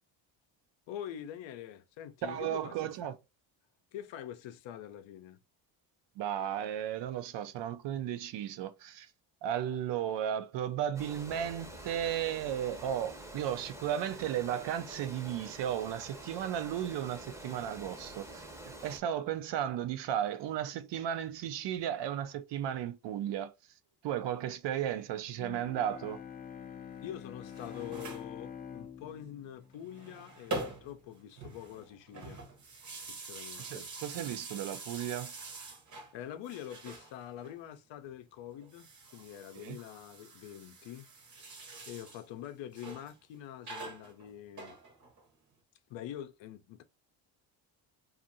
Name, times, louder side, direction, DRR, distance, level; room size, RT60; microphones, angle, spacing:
voice 1, 0.9-2.7 3.9-5.4 27.0-32.4 33.1-33.9 36.1-41.1 41.4-44.8 45.9-46.8, left 11 dB, 65° left, 0.6 m, -45 dB
voice 2, 2.2-3.1 6.2-9.1 9.4-23.5 24.0-26.2 33.6-35.3 39.6-39.8, right 10 dB, 60° right, 0.6 m, -35 dB
Water, 11.0-19.0, right 1 dB, 5° right, 0.7 m, -47 dB
Bowed string instrument, 25.4-30.6, left 7 dB, 20° left, 0.3 m, -46 dB
sound 1, 27.3-28.3 29.7-31.1 31.3-36.1 36.4-37.6 38.6-42.2 42.7-43.1 43.6-45.2, right 2 dB, 40° right, 0.9 m, -45 dB
2.6 x 2.5 x 2.5 m
cardioid pair, 100°, 48 cm